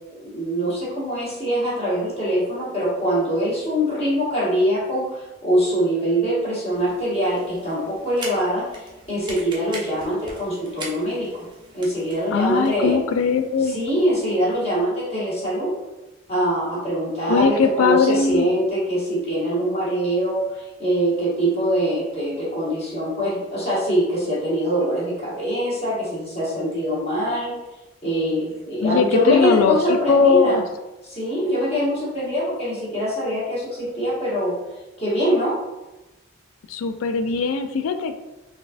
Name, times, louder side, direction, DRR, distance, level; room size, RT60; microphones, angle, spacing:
voice 1, 0.2-11.3 11.7-13.0 13.6-15.7 16.3-27.5 28.0-30.6 31.0-34.5 35.0-35.5, equal, 30° left, -7 dB, 1.0 m, -23 dB
sound 1, 6.7-14.8, right 2 dB, 20° right, 0.4 m, -42 dB
voice 2, 12.3-13.8 17.3-18.5 28.8-30.6 36.7-38.2, left 5 dB, 75° left, 8 dB, 0.3 m, -20 dB
4.0 x 2.3 x 2.5 m, 1.0 s
head